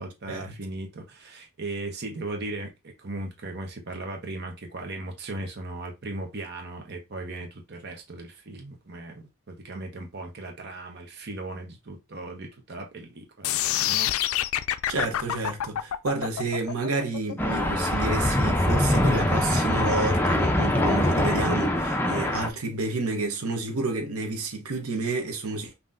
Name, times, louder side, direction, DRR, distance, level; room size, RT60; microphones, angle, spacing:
voice 1, 0.0-14.1, right 2 dB, 50° right, 0.9 m, -37 dB
sound 1, 13.4-19.5, left 12 dB, 75° left, 0.3 m, -28 dB
voice 2, 14.9-25.7, right 3 dB, 85° right, 0.9 m, -30 dB
sound 2, 17.4-22.5, left 1 dB, 10° left, 0.5 m, -23 dB
5.5 x 2.9 x 2.6 m
head